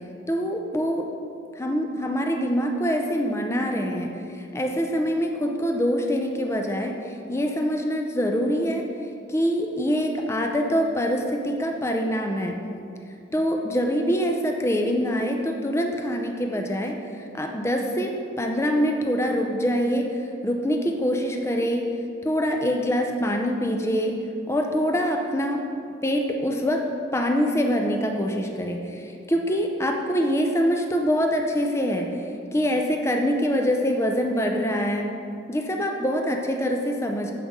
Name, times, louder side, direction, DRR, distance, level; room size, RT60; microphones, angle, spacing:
voice 1, 0.3-1.1 1.6-8.8 9.3-12.6 13.3-18.1 18.4-21.8 22.2-24.1 24.5-25.6 26.0-26.8 27.1-32.1 32.5-35.1 35.5-37.3, equal, 15° left, 3 dB, 0.5 m, -24 dB
9.2 x 7.4 x 3.6 m, 2.5 s
head